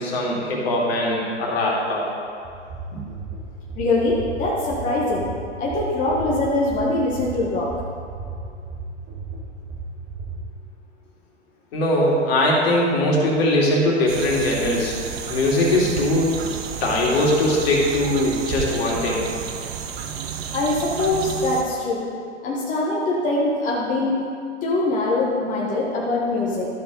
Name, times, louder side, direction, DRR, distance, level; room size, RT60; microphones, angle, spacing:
voice 1, 0.0-2.1 2.9-3.0 11.7-14.9 15.3-16.5 16.8-19.3, left 1 dB, 55° left, -3 dB, 2.6 m, -21 dB
sound 1, 2.5-10.4, right 4 dB, 25° right, 1.6 m, -34 dB
voice 2, 3.8-5.3 5.6-7.7 20.5-22.0 22.4-24.2 24.6-26.7, left 2 dB, 20° left, -5 dB, 1.3 m, -23 dB
sound 2, 14.1-21.6, right 7 dB, 55° right, 1.0 m, -31 dB
12.5 x 6.7 x 4.0 m, 2.3 s
hypercardioid pair, 115°, 37 cm